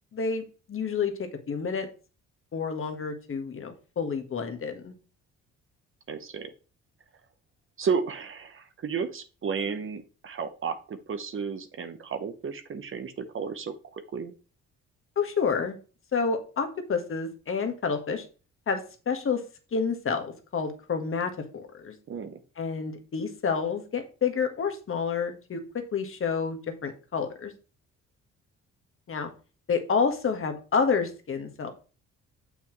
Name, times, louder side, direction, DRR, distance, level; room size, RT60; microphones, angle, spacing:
voice 1, 0.1-0.4 0.7-1.9 2.5-4.9 15.1-15.8 16.1-18.2 18.7-19.4 19.7-21.9 22.6-27.5 29.1-29.3 29.7-31.7, left 5 dB, 45° left, 6 dB, 1.5 m, -29 dB
voice 2, 6.1-6.5 7.8-14.3 22.1-22.4, right 6 dB, 45° right, 9 dB, 1.0 m, -33 dB
6.9 x 5.6 x 3.1 m, 0.35 s
cardioid pair, 90°, 30 cm